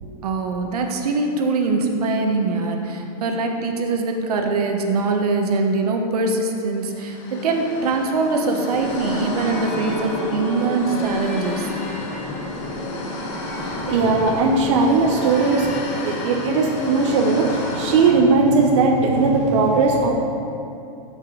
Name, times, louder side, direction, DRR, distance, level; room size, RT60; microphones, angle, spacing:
voice 1, 0.2-11.7, right 3 dB, 75° right, 3 dB, 1.1 m, -22 dB
sound 1, 6.8-18.1, left 3 dB, 50° left, 1.2 m, -32 dB
sound 2, 8.7-15.8, equal, ahead, 0.4 m, -33 dB
voice 2, 13.5-20.1, right 3 dB, 50° right, 0 dB, 0.8 m, -18 dB
13.5 x 5.3 x 3.8 m, 2.7 s
supercardioid pair, 180°, 20 cm